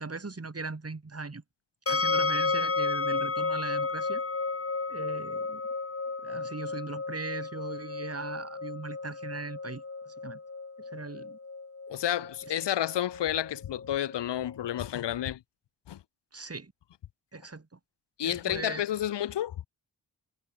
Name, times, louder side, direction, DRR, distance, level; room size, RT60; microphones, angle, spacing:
voice 1, 0.0-1.4 1.9-4.2 4.9-5.6 6.2-10.4 10.8-11.4 16.3-16.7 17.3-17.8 18.2-18.8, right 3 dB, 35° right, 5.5 m, -39 dB
sound 1, 1.9-14.8, left 4 dB, 35° left, 2.1 m, -33 dB
voice 2, 11.9-15.4 15.9-16.0 18.2-19.6, left 11 dB, 80° left, 0.7 m, -30 dB
wide cardioid pair, 75°, 41 cm